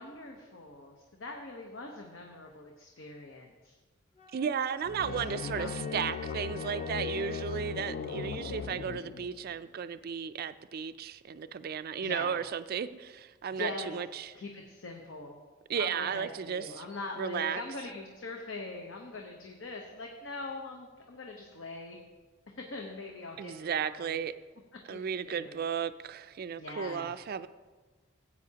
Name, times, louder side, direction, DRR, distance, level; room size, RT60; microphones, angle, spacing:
voice 1, 0.0-3.8 5.1-6.1 8.6-9.1 12.0-12.4 13.5-14.0 14.3-15.4 15.8-22.0 22.5-24.2 24.9-25.6 26.6-27.1, left 3 dB, 75° left, 1 dB, 0.9 m, -42 dB
sound 1, 4.1-9.2, left 1 dB, 35° left, 1.1 m, -51 dB
voice 2, 4.3-14.3 15.7-16.8 17.2-17.6 23.4-24.3 24.9-27.5, right 7 dB, 50° right, 13 dB, 0.3 m, -34 dB
sound 2, 4.8-9.6, left 6 dB, 55° left, 0.3 m, -38 dB
15.5 x 8.5 x 2.9 m, 1.3 s
head